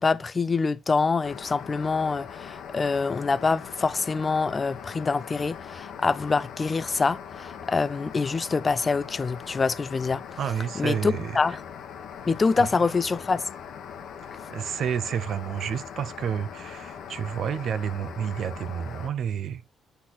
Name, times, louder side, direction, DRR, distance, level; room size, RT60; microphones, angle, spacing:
voice 1, 0.0-10.2 10.8-11.6 12.3-13.5, left 4 dB, 30° left, 0.4 m, -25 dB
sound 1, 1.2-19.1, left 7 dB, 75° left, 1.0 m, -41 dB
voice 2, 10.4-11.4 12.6-12.7 14.2-19.6, right 8 dB, 65° right, 0.6 m, -30 dB
7.9 x 4.1 x 4.1 m
cardioid pair, 90°, 0 cm